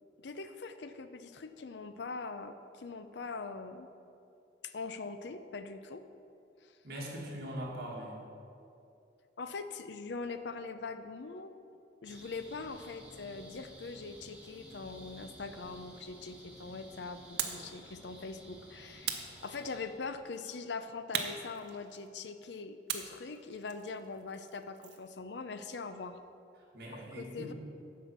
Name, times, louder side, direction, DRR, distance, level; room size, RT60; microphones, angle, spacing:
voice 1, 0.2-3.9 4.6-6.0 6.6-6.8 9.4-11.5 12.0-26.2 26.9-27.5, left 4 dB, 75° left, 10 dB, 0.5 m, -42 dB
voice 2, 6.8-8.2 26.6-27.5, equal, 55° right, -4 dB, 2.1 m, -41 dB
sound 1, 12.0-19.8, right 1 dB, 5° right, 1.6 m, -54 dB
sound 2, 17.4-17.7 19.0-20.0 21.1-22.2 22.9-25.1, right 8 dB, 75° right, 0.8 m, -39 dB
9.3 x 5.6 x 7.1 m, 2.6 s
head